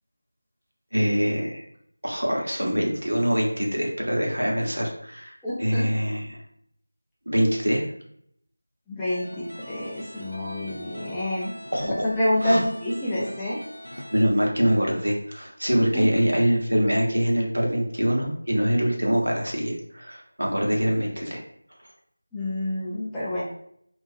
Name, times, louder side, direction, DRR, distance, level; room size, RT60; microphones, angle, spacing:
voice 1, 0.9-1.6 2.0-6.4 7.3-7.9 11.7-11.9 12.4-12.6 14.1-21.4, equal, 70° right, -1 dB, 0.8 m, -24 dB
voice 2, 5.4-5.8 8.9-11.5 11.8-13.6 15.8-16.0 22.3-23.4, left 1 dB, 5° left, -10 dB, 0.3 m, -27 dB
sound 1, 9.0-14.3, equal, 85° left, 0.5 m, -41 dB
2.6 x 2.3 x 2.4 m, 0.69 s
figure-of-eight pair, 170°, 0 cm